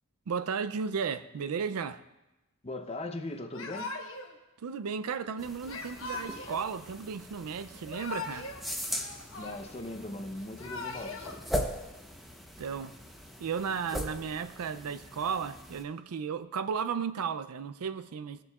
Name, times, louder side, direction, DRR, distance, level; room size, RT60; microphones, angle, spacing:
voice 1, 0.3-2.0 4.6-8.5 12.6-12.9 13.4-18.4, right 6 dB, 80° right, 0.4 m, -34 dB
voice 2, 2.6-3.9 9.4-11.3, left 2 dB, 30° left, 0.7 m, -39 dB
Yell / Crying sobbing, 3.5-4.3 5.7-6.6 7.7-8.6 8.9-9.9 10.4-11.3, left 3 dB, 65° left, 1.2 m, -40 dB
sound 1, 5.4-15.8, equal, ahead, 0.8 m, -40 dB
20.5 x 6.9 x 2.3 m
head